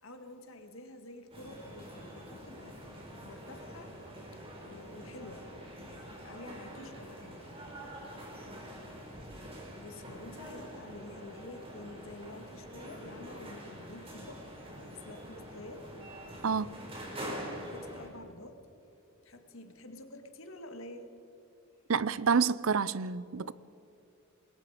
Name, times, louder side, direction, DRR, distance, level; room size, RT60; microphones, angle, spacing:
voice 1, 0.0-5.5 6.2-7.4 9.8-14.4 14.8-15.9 17.7-18.7 19.2-21.1, left 1 dB, 65° left, 1.9 m, -49 dB
sound 1, 1.3-18.1, equal, 25° right, 4.7 m, -45 dB
voice 2, 21.9-23.5, right 6 dB, 70° right, 0.6 m, -28 dB
28.0 x 21.0 x 5.0 m
head